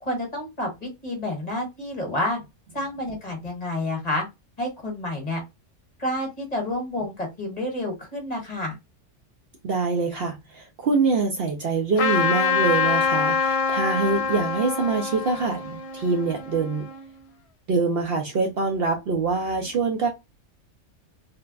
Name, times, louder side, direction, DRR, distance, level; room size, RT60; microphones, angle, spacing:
voice 1, 0.0-2.4 2.7-4.2 4.6-5.4 6.0-8.7, left 1 dB, 35° left, 1.2 m, -29 dB
voice 2, 9.6-16.9 17.7-20.1, right 4 dB, 60° right, 0.7 m, -24 dB
Trumpet, 12.0-17.0, left 5 dB, 60° left, 0.9 m, -25 dB
3.2 x 2.1 x 2.2 m
omnidirectional pair, 1.3 m